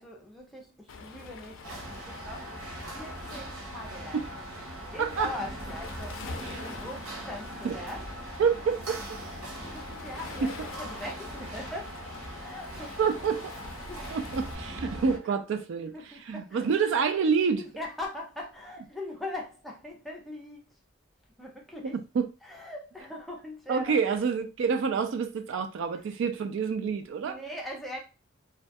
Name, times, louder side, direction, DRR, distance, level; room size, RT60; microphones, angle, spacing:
voice 1, 0.0-4.2 4.9-8.1 9.2-12.0 12.4-13.3 13.9-14.2 15.0-15.4 15.9-16.7 17.6-20.8 21.4-22.0 22.4-24.0 26.0-26.1 27.2-28.0, left 1 dB, ahead, 0.5 m, -41 dB
Waves surf, 0.9-14.5, left 4 dB, 65° left, 0.4 m, -46 dB
sound 1, 1.6-15.2, right 1 dB, 85° right, 0.7 m, -40 dB
voice 2, 5.0-5.3 7.6-7.7 8.4-8.8 13.0-13.5 14.1-15.9 16.3-17.6 22.2-22.3 23.7-27.4, right 6 dB, 65° right, 0.3 m, -27 dB
2.3 x 2.2 x 2.5 m
head